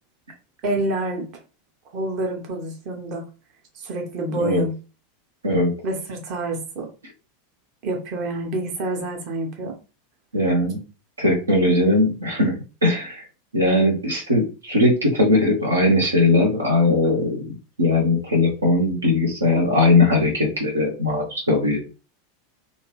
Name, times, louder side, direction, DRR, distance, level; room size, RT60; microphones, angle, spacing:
voice 1, 0.6-1.3 1.9-3.2 3.7-4.7 5.8-6.9 7.8-9.8, right 2 dB, 45° right, 2 dB, 1.0 m, -27 dB
voice 2, 10.3-10.8 11.2-12.5 12.8-13.2 13.5-17.5 17.8-21.9, left 2 dB, 80° right, 0 dB, 0.9 m, -19 dB
2.7 x 2.7 x 3.1 m, 0.32 s
figure-of-eight pair, 85°, 0 cm